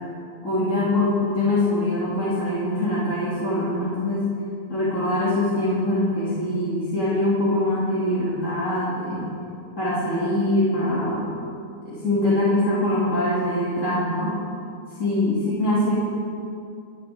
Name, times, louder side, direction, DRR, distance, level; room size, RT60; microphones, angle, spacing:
voice 1, 0.4-4.2 4.7-9.3 9.8-11.3 11.8-14.4 15.0-15.9, left 1 dB, 55° left, -10 dB, 3.1 m, -23 dB
26.0 x 9.5 x 3.6 m, 2.5 s
omnidirectional pair, 1.5 m